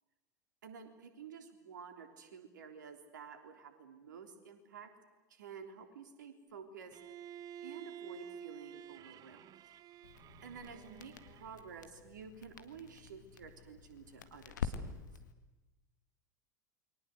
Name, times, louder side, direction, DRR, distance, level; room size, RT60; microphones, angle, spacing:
voice 1, 0.6-4.9 5.3-7.0 7.6-9.5 10.4-14.9, right 6 dB, 70° right, 7 dB, 3.4 m, -51 dB
Bowed string instrument, 6.9-11.8, right 9 dB, 35° right, 0.9 m, -51 dB
Crackle, 10.0-15.3, left 6 dB, 70° left, 1.9 m, -46 dB
29.0 x 23.0 x 8.0 m, 1.1 s
figure-of-eight pair, 80°, 10 cm